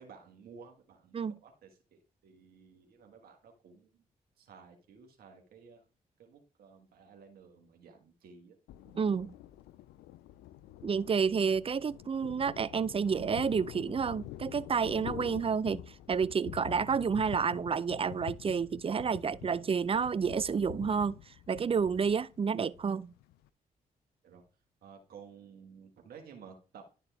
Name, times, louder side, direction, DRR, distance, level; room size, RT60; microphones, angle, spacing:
voice 1, 0.0-4.0 4.4-5.8 6.2-8.6 24.2-24.4 24.8-26.9, right 6 dB, 75° right, 1.5 m, -54 dB
Thunder, 8.7-23.5, left 13 dB, 85° left, 0.4 m, -47 dB
voice 2, 8.9-9.3 10.8-15.8 16.1-21.1 21.5-23.1, right 6 dB, 35° right, 0.5 m, -30 dB
11.5 x 4.2 x 3.4 m
supercardioid pair, 45°, 16 cm